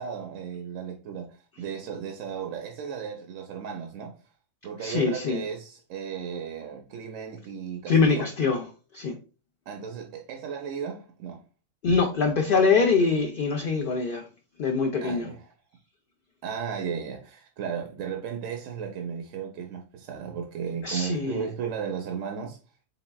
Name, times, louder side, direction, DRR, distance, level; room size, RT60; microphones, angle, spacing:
voice 1, 0.0-4.1 4.6-8.3 9.7-11.4 15.0-15.5 16.4-22.6, right 7 dB, 75° right, 0.9 m, -35 dB
voice 2, 4.8-5.4 7.9-8.6 8.9-9.1 11.8-14.2 14.6-15.3 20.8-21.4, left 4 dB, 65° left, 0.5 m, -23 dB
3.9 x 3.8 x 2.2 m
omnidirectional pair, 1.4 m